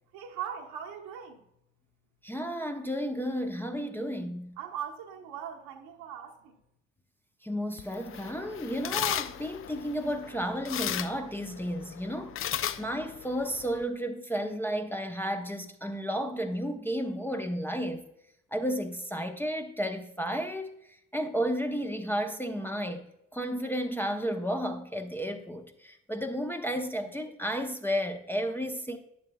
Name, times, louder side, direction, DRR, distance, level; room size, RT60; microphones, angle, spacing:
voice 1, 0.1-1.4 4.6-6.6, right 9 dB, 65° right, 1.3 m, -40 dB
voice 2, 2.2-4.6 7.4-12.3 12.8-18.1 18.5-20.7 21.1-23.1 23.3-29.0, equal, 5° left, 0.8 m, -32 dB
sound 1, 7.8-13.8, left 11 dB, 35° left, 0.5 m, -36 dB
9.9 x 7.5 x 2.3 m
figure-of-eight pair, 50°, 38 cm